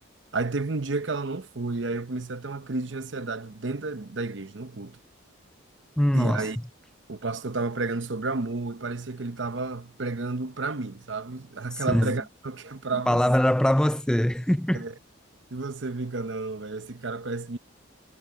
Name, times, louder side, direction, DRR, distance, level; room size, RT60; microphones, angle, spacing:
voice 1, 0.3-5.0 6.1-6.6 7.1-13.2 14.7-14.9 15.5-17.6, right 3 dB, 60° right, 0.9 m, -31 dB
voice 2, 6.0-6.5 11.7-12.1 12.9-14.8, equal, 5° left, 0.3 m, -23 dB
head